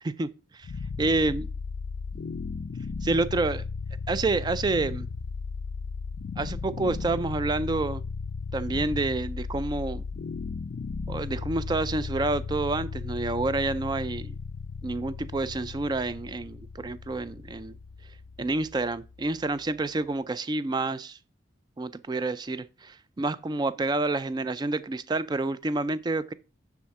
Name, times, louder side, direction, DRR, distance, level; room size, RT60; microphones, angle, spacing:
voice 1, 0.0-0.7 1.0-1.5 3.0-3.6 4.1-5.1 6.4-8.0 8.5-10.0 11.1-14.4 14.8-17.7 18.4-21.2 21.8-26.3, right 2 dB, 20° right, 0.3 m, -28 dB
sound 1, 0.6-19.7, left 4 dB, 60° left, 0.4 m, -36 dB
10.5 x 3.6 x 4.6 m
head